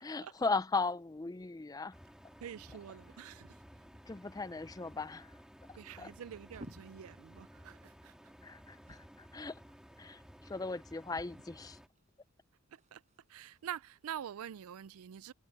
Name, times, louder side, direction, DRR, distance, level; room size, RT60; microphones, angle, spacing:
voice 1, 0.0-1.9 4.1-5.3 6.0-6.1 8.4-9.6 10.0-10.2 10.4-11.8, left 4 dB, 15° left, 0.4 m, -37 dB
sound 1, 1.3-14.7, equal, 35° right, 7.0 m, -61 dB
sound 2, 1.9-11.9, equal, 5° right, 2.7 m, -56 dB
voice 2, 2.4-3.6 5.8-8.1 12.7-13.0 13.3-15.3, right 9 dB, 80° right, 0.4 m, -46 dB
head